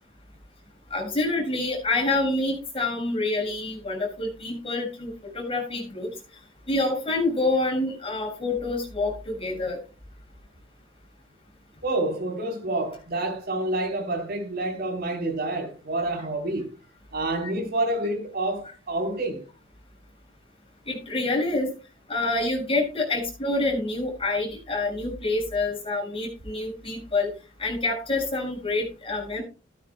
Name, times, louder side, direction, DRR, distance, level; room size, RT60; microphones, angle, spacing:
voice 1, 0.9-6.1 6.7-9.8 20.9-21.7 22.1-27.3 27.6-29.4, left 2 dB, 30° left, 6.8 m, -27 dB
voice 2, 11.8-16.7 17.1-19.4, right 2 dB, 55° right, 4.2 m, -28 dB
15.5 x 12.5 x 2.3 m
head